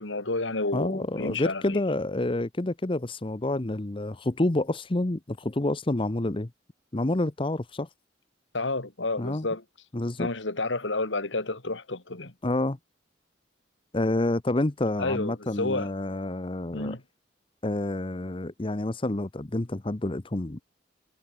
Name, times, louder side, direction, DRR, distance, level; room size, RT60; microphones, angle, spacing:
voice 1, 0.0-1.8 8.5-9.6 10.2-12.3 15.0-15.9 16.7-17.0, left 2 dB, 85° left, 2.7 m, -30 dB
voice 2, 0.7-6.5 6.9-7.9 9.2-9.5 9.9-10.3 12.4-12.8 13.9-17.0 17.6-20.6, left 2 dB, 30° left, 0.8 m, -28 dB
head